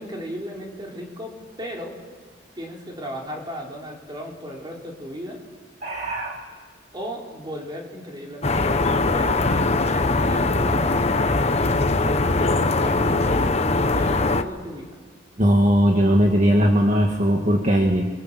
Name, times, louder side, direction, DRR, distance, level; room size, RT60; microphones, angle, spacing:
voice 1, 0.0-2.0 2.5-5.4 6.9-13.4 13.9-15.0, equal, 25° right, -1 dB, 4.7 m, -35 dB
voice 2, 5.8-6.4 15.4-18.1, equal, 40° right, 2 dB, 2.0 m, -19 dB
sound 1, 8.4-14.4, left 3 dB, 35° left, 1.1 m, -21 dB
Drum, 9.5-11.2, left 1 dB, 70° left, 1.6 m, -36 dB
28.5 x 23.5 x 7.8 m, 1.5 s
head